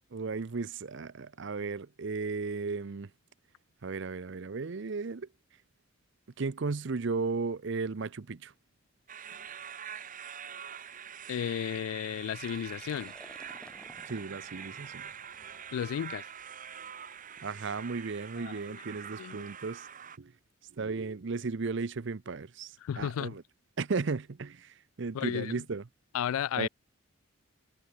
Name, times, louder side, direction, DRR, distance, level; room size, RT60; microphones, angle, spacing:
voice 1, 0.1-3.1 3.8-5.3 6.4-8.5 14.1-15.1 17.4-19.9 20.2-20.3 20.7-23.4 23.8-25.8 26.6-26.7, right 4 dB, 60° right, 0.6 m, -35 dB
sound 1, 9.1-20.2, right 8 dB, 40° right, 1.3 m, -45 dB
voice 2, 11.3-13.1 15.7-16.2 18.4-18.8 19.2-19.5 22.8-23.4 25.1-25.6 26.1-26.7, left 9 dB, 90° left, 0.3 m, -34 dB
Liquid, 12.3-18.0, left 1 dB, 5° left, 1.1 m, -57 dB
head